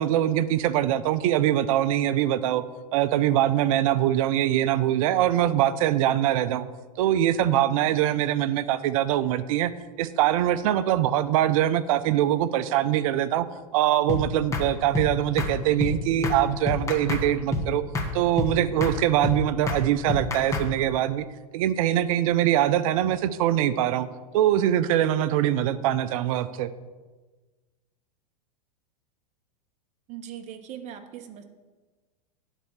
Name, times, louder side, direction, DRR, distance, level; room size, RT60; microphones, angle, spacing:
voice 1, 0.0-2.6 2.9-6.6 7.0-9.7 10.0-13.5 13.7-17.8 18.1-21.3 21.5-24.1 24.3-26.7, right 12 dB, 55° right, 14 dB, 0.6 m, -23 dB
sound 1, 14.1-14.2 14.5-14.7 14.9-15.1 15.4-15.5 15.8-15.9 16.2-16.4 16.7-17.2 17.5-17.7 17.9-18.1 18.4-18.5 18.8-19.0 19.2-19.4 19.7-19.8 20.1-20.7, left 2 dB, 15° left, 1.2 m, -27 dB
voice 2, 30.1-31.4, right 9 dB, 35° right, 6 dB, 1.1 m, -40 dB
10.0 x 4.4 x 7.3 m, 1.3 s
hypercardioid pair, 125°, 21 cm